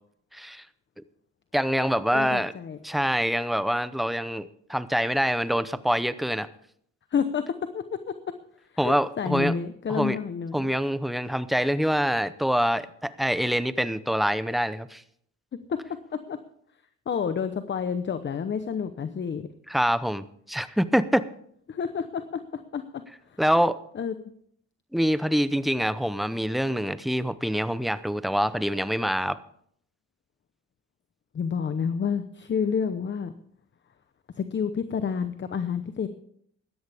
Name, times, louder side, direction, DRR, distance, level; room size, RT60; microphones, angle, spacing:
voice 1, 0.3-0.6 1.5-2.5 2.8-6.5 8.8-9.5 9.9-10.2 10.5-15.0 19.7-21.2 23.4-23.8 24.9-29.4, equal, ahead, 14 dB, 0.7 m, -25 dB
voice 2, 2.1-2.8 7.1-8.1 8.8-10.6 15.7-15.8 16.1-16.4 17.1-19.5 21.7-23.0 23.9-24.1 31.3-33.3 34.4-36.1, left 6 dB, 40° left, 10 dB, 0.9 m, -29 dB
17.0 x 12.5 x 3.5 m, 0.66 s
cardioid pair, 90°, 30 cm